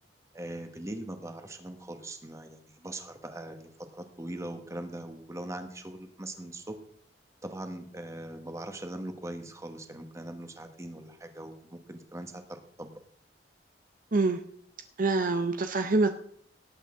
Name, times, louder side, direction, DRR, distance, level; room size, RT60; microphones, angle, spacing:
voice 1, 0.3-6.8 7.4-12.9, right 1 dB, 15° right, 7 dB, 1.3 m, -41 dB
voice 2, 15.0-16.1, right 3 dB, 50° right, 8 dB, 0.7 m, -25 dB
18.0 x 8.1 x 3.7 m, 0.62 s
head